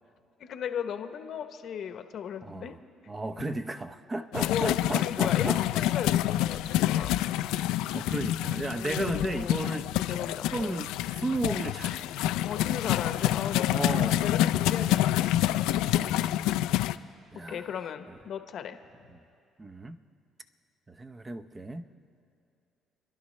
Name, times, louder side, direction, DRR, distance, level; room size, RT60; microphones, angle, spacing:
voice 1, 0.4-2.7 4.5-7.1 8.7-9.6 10.1-10.8 12.4-13.7 14.2-15.3 17.5-18.8, left 8 dB, 60° left, 8 dB, 0.8 m, -36 dB
voice 2, 2.4-2.8 3.1-5.6 7.9-10.2 10.5-12.1 13.7-14.5 15.8-16.4 17.3-17.8 18.1-18.2 19.1-19.2 19.6-20.0 20.9-21.9, right 2 dB, 25° right, 10 dB, 0.7 m, -34 dB
sound 1, 4.3-17.0, left 14 dB, 85° left, 0.3 m, -27 dB
30.0 x 11.5 x 3.2 m, 2.5 s
cardioid pair, 85°, 0 cm